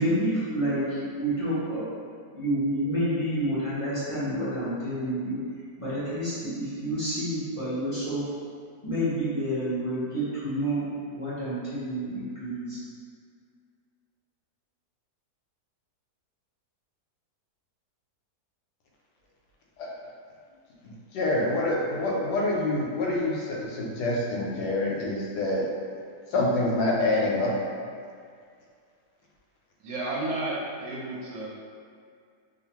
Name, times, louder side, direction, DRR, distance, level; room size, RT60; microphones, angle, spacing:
voice 1, 0.0-1.8 2.3-5.4 5.8-8.2 8.8-10.8 11.1-12.8, right 1 dB, 40° left, -13 dB, 0.4 m, -29 dB
voice 2, 20.8-25.7 26.3-27.6, left 2 dB, 90° left, -3 dB, 1.2 m, -26 dB
voice 3, 29.8-31.5, right 2 dB, 70° right, -6 dB, 0.9 m, -32 dB
2.6 x 2.4 x 2.8 m, 2.2 s
omnidirectional pair, 1.7 m